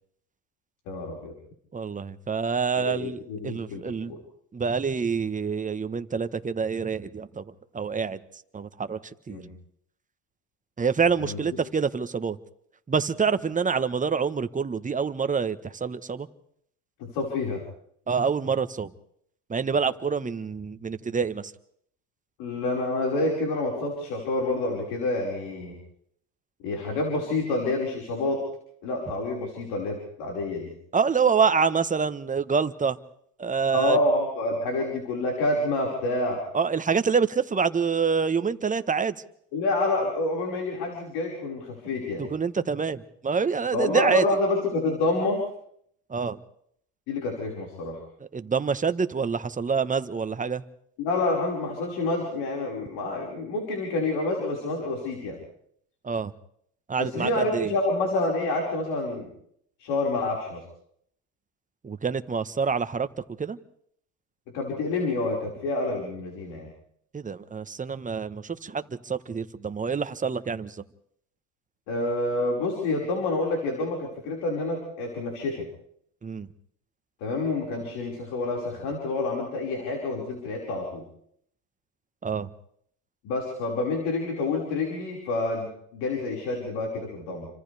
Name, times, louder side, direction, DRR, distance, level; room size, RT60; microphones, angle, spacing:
voice 1, 0.9-1.3 2.8-4.2 9.3-9.5 11.2-11.4 17.1-17.6 22.4-25.8 26.6-28.5 28.8-30.7 33.7-36.4 39.5-42.2 43.7-45.4 47.1-48.0 51.0-55.4 57.0-59.3 59.8-60.6 64.5-66.7 71.9-75.6 77.2-81.0 83.2-87.5, left 2 dB, 75° left, 5.5 m, -28 dB
voice 2, 1.7-4.1 4.5-7.4 7.7-8.2 8.5-9.0 9.3-9.4 10.8-12.4 12.9-16.3 18.1-18.9 19.5-21.5 30.9-33.0 33.4-34.0 36.5-39.2 42.2-44.2 46.1-46.4 48.2-50.6 56.0-56.3 56.9-57.7 61.8-63.1 63.4-63.6 67.1-70.8 76.2-76.5 82.2-82.5, right 5 dB, 20° right, 1.3 m, -26 dB
30.0 x 25.5 x 3.5 m
supercardioid pair, 80°, 35 cm